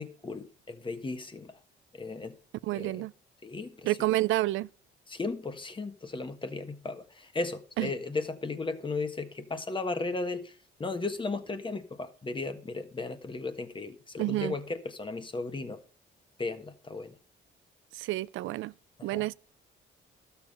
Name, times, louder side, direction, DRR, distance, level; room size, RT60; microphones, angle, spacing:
voice 1, 0.0-1.6 1.9-2.4 2.7-3.1 3.4-4.0 5.1-15.8 16.4-17.1 19.0-19.3, left 3 dB, 25° left, 1.4 m, -36 dB
voice 2, 2.6-3.1 3.8-4.7 7.8-7.9 14.2-14.5 17.9-18.7 19.0-19.3, right 17 dB, 85° right, 0.4 m, -29 dB
12.5 x 7.0 x 5.4 m
cardioid pair, 90°, 20 cm